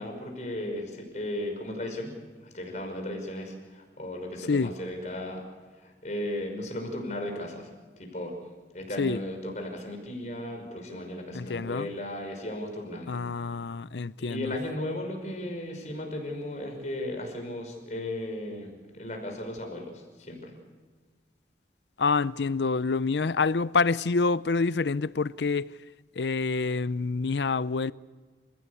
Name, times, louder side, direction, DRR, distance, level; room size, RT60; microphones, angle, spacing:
voice 1, 0.0-2.1 2.4-5.4 6.0-7.7 8.0-8.3 8.7-13.2 14.2-19.9 20.3-20.5, left 1 dB, 40° left, 5.8 m, -35 dB
voice 2, 11.3-11.9 13.1-14.5 22.0-25.7 26.2-27.9, left 4 dB, 80° left, 0.6 m, -27 dB
29.0 x 16.5 x 8.4 m
head